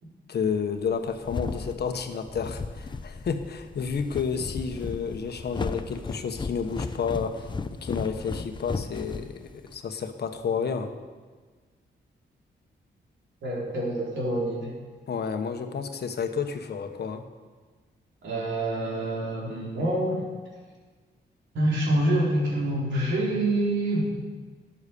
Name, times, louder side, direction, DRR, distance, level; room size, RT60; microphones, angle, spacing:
voice 1, 0.3-7.5 7.8-10.9 15.1-17.2, left 6 dB, 60° left, 7 dB, 1.2 m, -30 dB
sound 1, 0.9-9.8, left 4 dB, 25° left, 0.6 m, -35 dB
voice 2, 13.4-14.7 18.2-20.3 21.5-24.0, right 1 dB, 85° right, -3 dB, 4.0 m, -26 dB
14.0 x 9.9 x 6.9 m, 1.4 s
wide cardioid pair, 135°, 19 cm